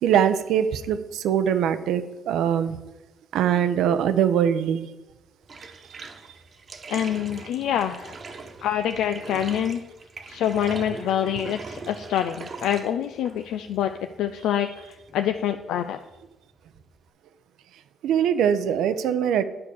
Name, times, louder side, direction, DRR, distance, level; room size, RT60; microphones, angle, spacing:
voice 1, 0.0-2.8 3.3-4.9 18.0-19.4, right 9 dB, 85° right, 12 dB, 0.6 m, -22 dB
Bathtub (filling or washing), 5.4-17.1, right 4 dB, 45° right, 1.1 m, -42 dB
voice 2, 6.9-8.1 8.6-9.8 10.3-13.9 14.2-16.0, left 10 dB, 85° left, 7 dB, 0.4 m, -26 dB
9.5 x 4.8 x 6.9 m, 1.0 s
cardioid pair, 90°, 0 cm